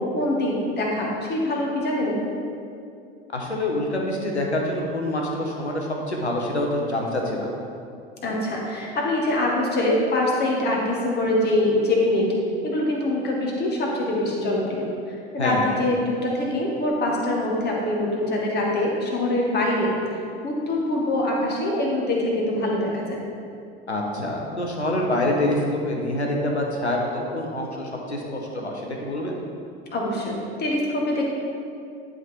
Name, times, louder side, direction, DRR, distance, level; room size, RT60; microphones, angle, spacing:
voice 1, 0.0-2.2 8.2-12.3 12.6-19.9 20.4-23.2 29.9-31.2, left 1 dB, 30° left, -2 dB, 1.8 m, -24 dB
voice 2, 3.3-7.5 15.4-15.7 23.9-29.3, left 1 dB, 85° left, 0 dB, 1.1 m, -26 dB
11.0 x 3.9 x 4.6 m, 2.5 s
figure-of-eight pair, 75°, 33 cm